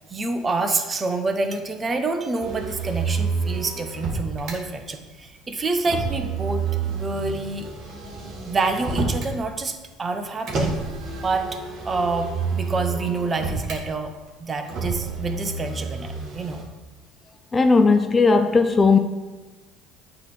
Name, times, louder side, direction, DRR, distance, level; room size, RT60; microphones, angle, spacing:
voice 1, 0.1-6.6 6.9-7.7 8.4-10.7 11.2-11.5 11.8-14.1 14.4-16.6, right 3 dB, 30° right, 1.0 m, -27 dB
Motor vehicle (road), 2.4-4.6 5.8-9.4 10.5-13.8 14.7-16.6, right 4 dB, 50° right, 1.8 m, -29 dB
voice 2, 17.5-19.0, left 4 dB, 25° left, 0.5 m, -17 dB
8.3 x 3.4 x 6.1 m
hypercardioid pair, 70°, 0 cm